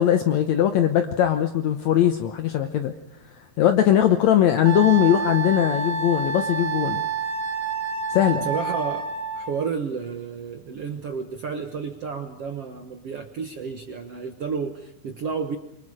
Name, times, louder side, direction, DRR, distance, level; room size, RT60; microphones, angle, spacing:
voice 1, 0.0-2.9 3.6-7.0 8.1-8.5, left 11 dB, 75° left, 8 dB, 1.6 m, -20 dB
Wind instrument woodwind instrument, 4.7-9.5, right 4 dB, 40° right, 2.9 m, -28 dB
voice 2, 8.4-15.6, right 5 dB, 60° right, 7 dB, 1.6 m, -31 dB
28.5 x 24.5 x 4.9 m, 0.75 s
omnidirectional pair, 4.6 m